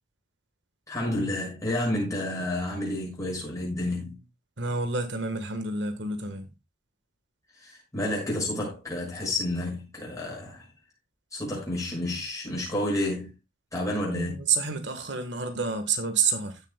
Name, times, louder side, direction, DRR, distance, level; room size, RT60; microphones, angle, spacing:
voice 1, 0.9-4.2 7.6-10.7 11.3-13.3 13.7-14.4, left 1 dB, 15° left, 6.2 m, -30 dB
voice 2, 4.6-6.5 14.1-16.6, right 5 dB, 60° right, 1.4 m, -29 dB
16.0 x 7.1 x 2.2 m
head